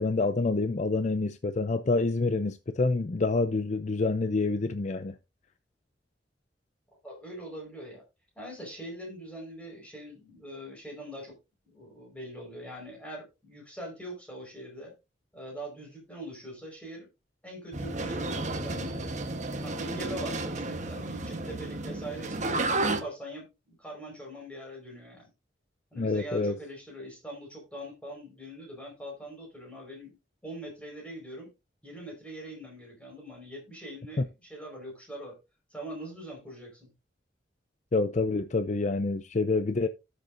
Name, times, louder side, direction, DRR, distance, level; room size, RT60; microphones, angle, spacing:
voice 1, 0.0-5.2 26.0-26.5 34.2-34.3 37.9-39.9, left 3 dB, 40° left, 0.5 m, -27 dB
voice 2, 7.0-8.0 8.3-11.4 11.6-14.9 15.3-17.1 17.4-19.2 19.6-25.3 25.9-30.2 30.4-31.5 31.8-35.4 35.7-36.9, right 1 dB, 5° left, 4.8 m, -42 dB
sound 1, 17.7-23.0, right 2 dB, 45° right, 1.2 m, -32 dB
17.5 x 6.7 x 2.6 m
head